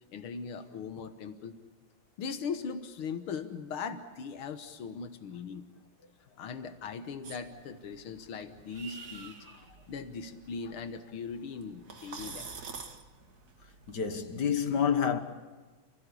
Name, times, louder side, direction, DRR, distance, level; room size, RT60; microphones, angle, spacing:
voice 1, 0.1-1.6 2.2-5.7 6.4-9.4 9.9-12.5, left 5 dB, 85° left, 2.1 m, -39 dB
sound 1, 7.2-14.0, right 5 dB, 50° right, 2.2 m, -48 dB
voice 2, 13.9-15.2, left 7 dB, 55° left, 2.0 m, -28 dB
29.5 x 16.5 x 8.4 m
omnidirectional pair, 2.3 m